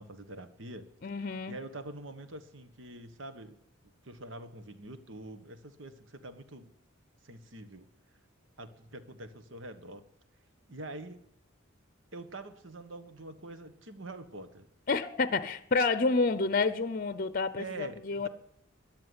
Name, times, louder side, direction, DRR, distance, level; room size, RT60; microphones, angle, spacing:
voice 1, 0.0-0.9 1.5-3.6 3.8-6.7 7.2-7.9 8.6-10.0 10.7-11.2 12.1-14.7 17.6-18.3, right 2 dB, 65° right, 1.5 m, -45 dB
voice 2, 1.0-1.6 14.9-18.3, left 3 dB, 45° left, 0.7 m, -29 dB
13.5 x 11.0 x 9.7 m
head